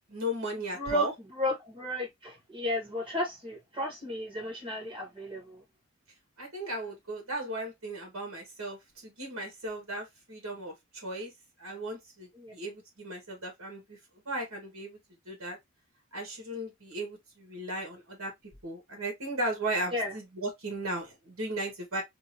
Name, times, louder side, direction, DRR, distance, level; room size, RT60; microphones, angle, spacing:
voice 1, 0.1-1.1 6.4-10.7 11.0-11.3 11.6-14.0 14.2-15.0 15.3-15.6 16.1-18.3 18.6-22.0, right 1 dB, 85° right, 1.5 m, -36 dB
voice 2, 0.7-5.6 12.4-12.5 19.9-20.1, left 1 dB, 25° right, 1.7 m, -33 dB
3.8 x 2.7 x 2.8 m
head